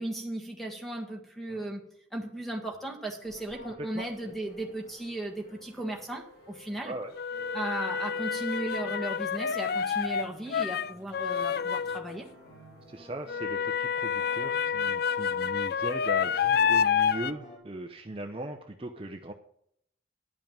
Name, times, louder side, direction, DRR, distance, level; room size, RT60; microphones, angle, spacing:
voice 1, 0.0-1.8 2.1-6.9 7.5-12.3, right 1 dB, ahead, 3 dB, 1.5 m, -36 dB
sound 1, 1.5-1.7 3.2-17.6, left 2 dB, 70° left, 4.1 m, -52 dB
sound 2, 4.3-4.4 7.1-12.2 13.3-17.3, left 7 dB, 50° left, 0.3 m, -28 dB
voice 2, 12.9-19.3, right 1 dB, 30° right, 5 dB, 0.6 m, -39 dB
10.5 x 5.5 x 8.7 m, 0.71 s
head